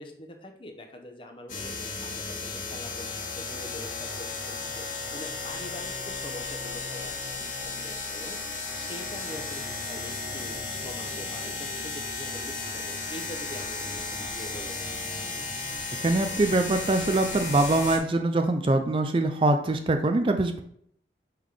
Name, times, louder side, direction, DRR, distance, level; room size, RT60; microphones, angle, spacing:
voice 1, 0.0-1.7 2.0-4.3 4.6-4.8 5.1-8.4 8.7-10.6 10.8-14.8, left 1 dB, 30° left, 4 dB, 0.8 m, -44 dB
sound 1, 1.5-18.0, left 3 dB, 50° left, 1.6 m, -34 dB
voice 2, 16.0-20.6, right 2 dB, 30° right, 6 dB, 0.4 m, -23 dB
5.7 x 3.6 x 4.8 m, 0.68 s
head